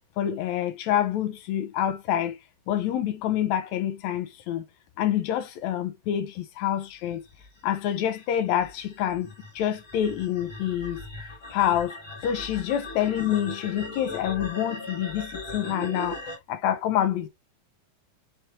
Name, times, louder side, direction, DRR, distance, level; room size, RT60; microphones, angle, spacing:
voice 1, 0.2-2.4 2.7-4.6 5.0-7.2 7.6-9.3 9.5-11.0 11.5-12.0 12.2-17.3, left 10 dB, 75° left, 1.7 m, -27 dB
sound 1, 7.1-16.4, left 2 dB, 25° left, 1.7 m, -39 dB
5.9 x 3.4 x 2.6 m
omnidirectional pair, 3.7 m